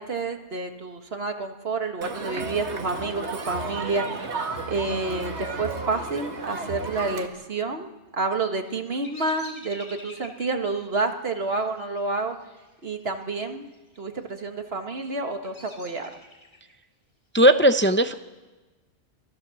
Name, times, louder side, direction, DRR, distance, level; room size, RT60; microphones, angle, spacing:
voice 1, 0.0-4.2 4.7-12.4 12.8-13.7 14.0-16.1, right 3 dB, 65° right, 5 dB, 1.8 m, -29 dB
Crowd, 2.0-7.3, right 3 dB, 80° right, 2.0 m, -33 dB
Bird vocalization bird call bird song, 8.3-13.3 13.6-14.2 14.7-16.7, left 2 dB, 65° left, 4.1 m, -48 dB
voice 2, 17.3-18.1, right 1 dB, 15° left, 9 dB, 0.6 m, -17 dB
25.0 x 16.5 x 7.1 m, 1.2 s
omnidirectional pair, 1.1 m